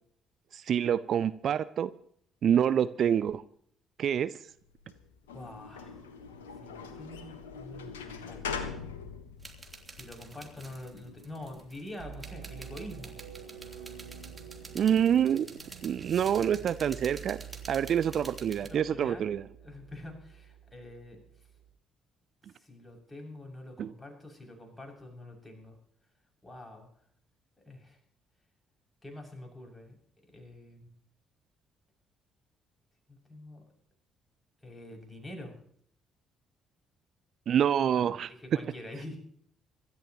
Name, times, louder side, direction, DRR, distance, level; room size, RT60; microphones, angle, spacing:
voice 1, 0.5-1.9 2.4-3.4 4.0-4.3 14.7-15.5 15.8-17.4 17.7-19.4 23.8-23.9 37.5-38.3, right 9 dB, 50° right, 15 dB, 0.6 m, -26 dB
sound 1, 4.6-15.4, left 5 dB, 80° left, 1.5 m, -44 dB
voice 2, 5.3-6.0 6.6-8.7 9.9-13.2 18.6-19.3 19.6-21.2 22.6-25.8 26.4-26.9 27.6-28.0 29.0-30.0 30.3-30.9 33.1-33.6 34.6-35.6 38.0-39.2, left 1 dB, 15° left, 1 dB, 6.9 m, -46 dB
sound 2, 9.4-18.7, right 3 dB, 25° right, 3.4 m, -49 dB
sound 3, 12.0-21.7, right 9 dB, 70° right, 1.7 m, -48 dB
25.5 x 13.5 x 3.1 m, 0.64 s
figure-of-eight pair, 45°, 0 cm